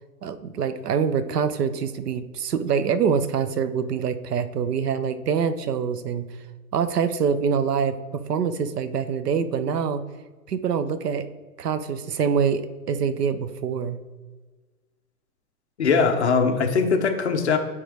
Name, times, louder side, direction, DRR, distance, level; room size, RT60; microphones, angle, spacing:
voice 1, 0.2-6.3 6.7-10.0 10.5-11.3 11.6-14.0, right 6 dB, 85° right, 12 dB, 0.8 m, -25 dB
voice 2, 15.8-17.6, left 5 dB, 45° left, 5 dB, 0.8 m, -21 dB
9.6 x 3.6 x 3.4 m, 1.3 s
hypercardioid pair, 180°, 46 cm